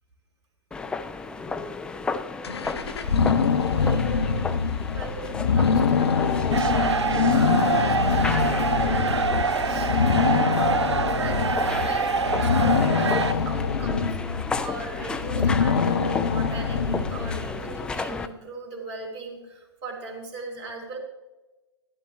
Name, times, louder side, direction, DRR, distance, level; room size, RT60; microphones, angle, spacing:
sound 1, 0.7-18.3, left 4 dB, 5° left, 0.4 m, -34 dB
sound 2, 2.4-17.9, left 5 dB, 65° left, 0.8 m, -24 dB
voice 1, 3.5-4.5 4.9-14.2 14.6-21.0, right 2 dB, 35° right, 1 dB, 2.8 m, -38 dB
sound 3, 6.5-13.3, right 5 dB, 75° right, 0.5 m, -25 dB
12.0 x 11.0 x 3.2 m, 1.1 s
figure-of-eight pair, 105°, 14 cm